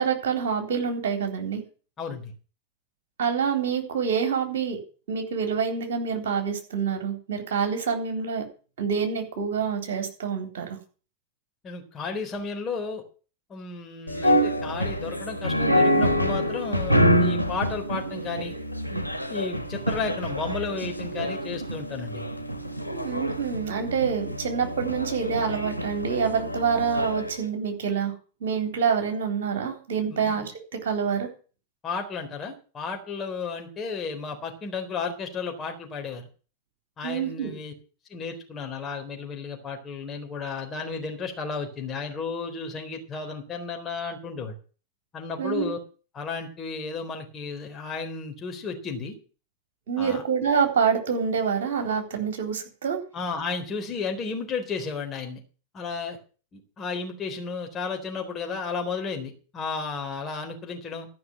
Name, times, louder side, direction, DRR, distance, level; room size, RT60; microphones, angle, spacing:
voice 1, 0.0-1.6 3.2-4.8 5.1-8.4 8.8-10.7 22.9-28.1 28.4-30.4 30.7-31.3 37.0-37.5 45.4-45.7 49.9-53.0, right 6 dB, 55° right, 5 dB, 3.8 m, -26 dB
voice 2, 2.0-2.3 11.6-13.0 13.5-18.5 18.9-19.0 19.3-22.2 30.1-30.5 31.8-36.3 37.0-37.7 38.1-44.6 45.1-45.8 46.1-49.2 50.0-50.2 53.1-55.4 55.7-56.2 56.5-61.1, left 4 dB, 25° left, 3 dB, 3.8 m, -33 dB
sound 1, 14.1-27.4, equal, 90° right, 1.2 m, -26 dB
14.0 x 5.9 x 9.6 m, 0.38 s
figure-of-eight pair, 90°, 0 cm